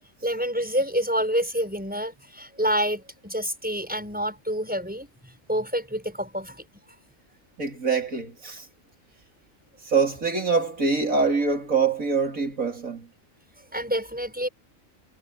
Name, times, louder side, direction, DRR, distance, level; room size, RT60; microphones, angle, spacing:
voice 1, 0.2-6.6 13.7-14.5, equal, 5° right, 6.2 m, -28 dB
voice 2, 7.6-8.7 9.8-13.1, right 4 dB, 90° right, 4.6 m, -24 dB
omnidirectional pair, 1.4 m